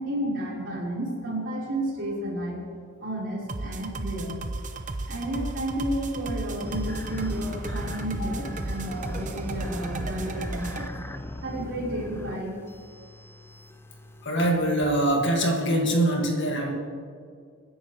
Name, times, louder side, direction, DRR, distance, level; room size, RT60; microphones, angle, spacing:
voice 1, 0.0-2.6 3.0-4.4 5.1-10.9 11.4-12.6, right 1 dB, 55° right, -5 dB, 4.4 m, -31 dB
sound 1, 3.5-10.9, right 2 dB, 35° right, 0.8 m, -34 dB
sound 2, 6.6-14.3, left 1 dB, 10° left, 0.5 m, -39 dB
voice 2, 14.2-16.7, right 1 dB, 55° left, 1 dB, 2.1 m, -24 dB
27.0 x 10.0 x 3.2 m, 2.1 s
head